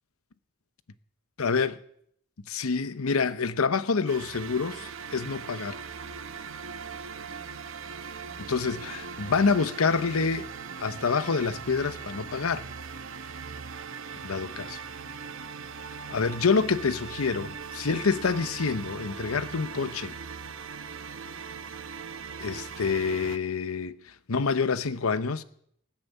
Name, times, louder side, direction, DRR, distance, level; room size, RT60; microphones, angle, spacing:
voice 1, 1.4-1.8 2.5-5.8 8.5-10.5 10.8-12.6 14.2-14.8 16.1-20.1 22.4-24.0 24.3-25.4, left 5 dB, 85° left, 0.8 m, -27 dB
sound 1, 4.1-23.4, right 6 dB, 65° right, 0.9 m, -40 dB
18.5 x 7.4 x 8.3 m
head